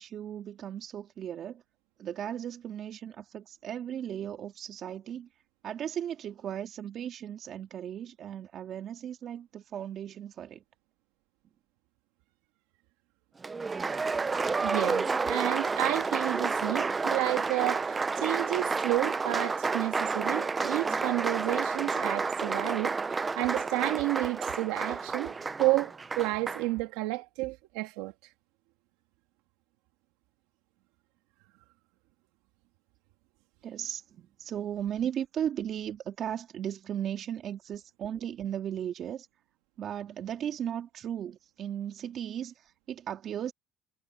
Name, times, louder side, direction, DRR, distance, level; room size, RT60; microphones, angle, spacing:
voice 1, 0.0-1.6 2.0-5.3 5.6-10.6 33.6-39.3 39.8-43.5, right 9 dB, 40° right, 3.1 m, -36 dB
Applause, 13.4-26.7, right 4 dB, 20° right, 0.6 m, -30 dB
voice 2, 14.5-25.3 25.6-28.1, right 20 dB, 90° right, 1.8 m, -31 dB
cardioid pair, 135°, 0 cm